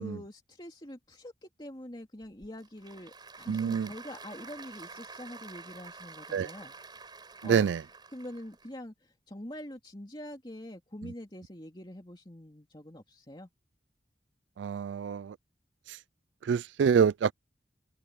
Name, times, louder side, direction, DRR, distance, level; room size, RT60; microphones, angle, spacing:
voice 1, 0.0-6.7 7.4-7.7 8.1-13.5, left 1 dB, 25° left, 2.7 m, -45 dB
Applause / Crowd, 2.2-8.7, right 4 dB, 25° right, 6.2 m, -48 dB
voice 2, 3.5-3.9 6.3-6.5 7.5-7.8 14.6-15.3 16.5-17.3, right 7 dB, 85° right, 0.3 m, -26 dB
head